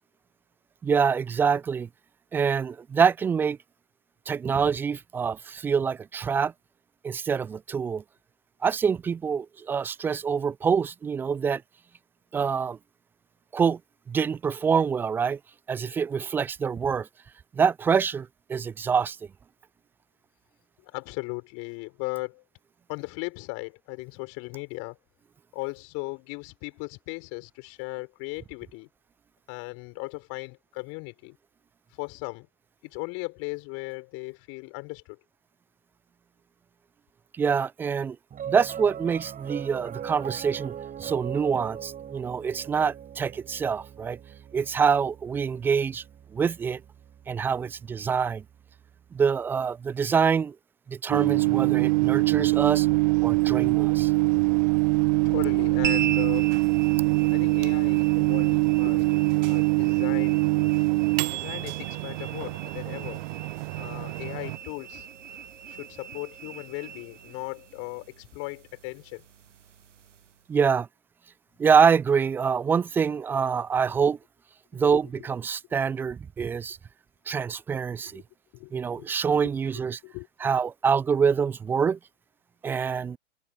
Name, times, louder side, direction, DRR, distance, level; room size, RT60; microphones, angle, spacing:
voice 1, 0.8-1.9 2.3-3.6 4.3-6.5 7.0-8.0 8.6-11.6 12.3-12.8 13.5-13.8 14.1-15.4 15.7-17.1 17.5-19.2 37.4-38.2 38.5-40.7 41.0-44.2 44.5-46.0 46.3-46.8 47.3-48.4 49.1-50.5 50.9-52.9 53.2-54.1 70.5-70.9 71.6-74.2 74.7-76.8 77.3-78.2 78.7-80.0 80.4-82.0 82.6-83.2, right 6 dB, 5° right, 0.3 m, -25 dB
voice 2, 20.8-22.4 22.9-25.0 25.5-28.9 29.5-31.4 32.0-32.5 32.8-35.2 55.2-56.5 57.3-59.1 59.4-60.4 61.0-63.2 63.8-65.1 65.7-69.2 74.0-74.1 78.1-78.2 78.5-79.1 80.0-80.5, left 28 dB, 40° left, 5.3 m, -37 dB
Piano, 38.3-48.8, right 9 dB, 20° right, 6.6 m, -41 dB
Microwave oven, 51.1-64.6, right 24 dB, 40° right, 0.8 m, -23 dB
sound 1, 55.8-70.4, right 8 dB, 80° right, 0.8 m, -40 dB
figure-of-eight pair, 100°, 36 cm